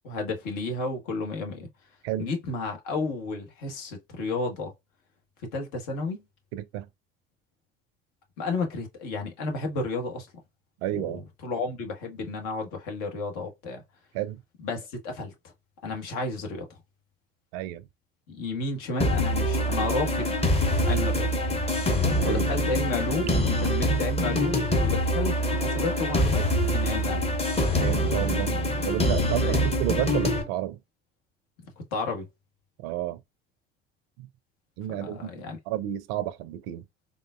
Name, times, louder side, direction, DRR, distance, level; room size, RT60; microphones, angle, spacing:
voice 1, 0.0-1.7 2.2-4.7 5.4-6.2 8.4-10.3 10.9-13.8 14.6-15.3 15.8-16.6 18.3-20.4 20.8-21.3 22.2-27.3 29.4-29.7 31.8-32.3 34.9-35.6, left 3 dB, 60° left, 1.3 m, -32 dB
voice 2, 6.5-6.9 10.8-11.2 14.1-14.4 17.5-17.8 22.2-22.4 27.8-28.6 28.9-30.8 32.8-33.2 34.2-34.3 34.8-36.8, right 13 dB, 60° right, 0.5 m, -31 dB
sound 1, 19.0-30.4, equal, 15° left, 0.9 m, -25 dB
3.6 x 2.5 x 2.2 m
figure-of-eight pair, 65°, 36 cm